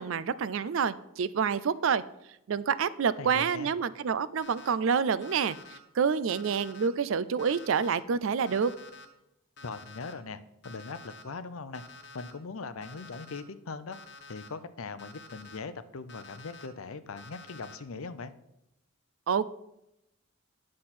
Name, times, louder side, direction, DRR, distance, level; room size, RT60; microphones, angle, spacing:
voice 1, 0.0-2.0 2.5-5.6 5.9-8.7 19.3-19.5, right 6 dB, 65° right, 16 dB, 0.4 m, -28 dB
voice 2, 3.2-3.7 9.6-10.4 10.6-11.8 12.1-14.0 14.3-18.3, left 4 dB, 75° left, 13 dB, 0.6 m, -40 dB
Alarm, 4.4-4.7 5.2-5.8 6.3-6.9 7.4-8.0 8.5-9.0 9.6-10.1 10.6-11.2 11.7-12.3 12.8-13.4 13.9-14.5 15.0-15.6 16.1-16.7 17.2-17.8, left 3 dB, 50° left, 1.0 m, -49 dB
9.8 x 7.5 x 4.3 m, 0.86 s
head